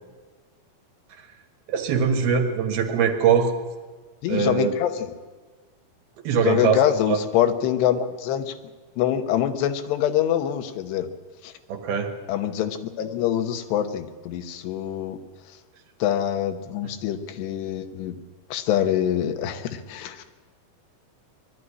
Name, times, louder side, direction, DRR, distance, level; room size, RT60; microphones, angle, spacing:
voice 1, 1.7-3.5 4.3-4.7 6.2-7.2 11.7-12.1, right 6 dB, 70° right, 5 dB, 3.4 m, -22 dB
voice 2, 4.2-5.1 6.4-8.5 9.0-11.1 11.4-11.5 12.3-15.2 16.0-18.2 18.5-20.3, left 10 dB, 90° left, 9 dB, 3.2 m, -25 dB
21.0 x 12.5 x 9.9 m, 1.4 s
omnidirectional pair, 4.7 m